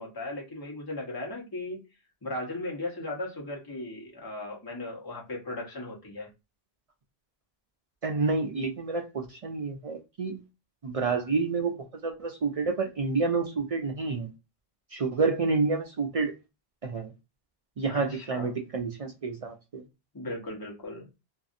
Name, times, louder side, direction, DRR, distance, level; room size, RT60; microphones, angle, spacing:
voice 1, 0.0-1.8 2.2-6.3 17.9-18.5 20.1-21.1, left 2 dB, 20° left, 1.0 m, -37 dB
voice 2, 8.0-10.4 10.8-11.7 12.0-14.3 14.9-16.3 16.8-17.1 17.8-19.8, right 4 dB, 55° right, 0.4 m, -29 dB
2.6 x 2.5 x 2.4 m
omnidirectional pair, 1.1 m